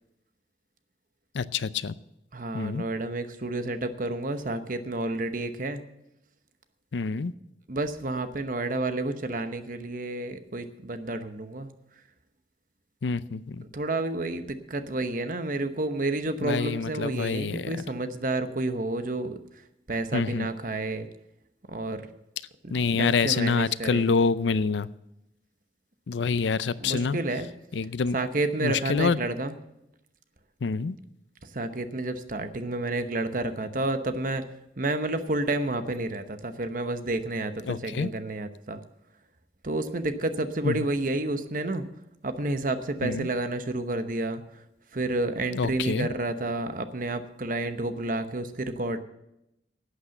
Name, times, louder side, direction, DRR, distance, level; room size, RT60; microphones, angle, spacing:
voice 1, 1.3-1.9 2.5-2.8 6.9-7.3 13.0-13.6 16.4-17.7 20.1-20.5 22.7-24.9 26.1-27.2 27.7-28.2 28.6-29.2 30.6-31.0 37.7-38.1 40.6-40.9 43.0-43.3 45.5-46.1, left 5 dB, 85° left, 17 dB, 0.5 m, -26 dB
voice 2, 2.3-5.8 7.7-11.7 13.7-19.4 19.9-21.1 21.7-22.1 22.6-24.1 26.8-27.5 28.1-29.6 31.4-34.4 34.8-38.8 39.6-41.8 42.2-44.6 44.9-49.0, right 2 dB, 50° right, 9 dB, 1.0 m, -30 dB
11.5 x 8.2 x 7.8 m, 0.86 s
head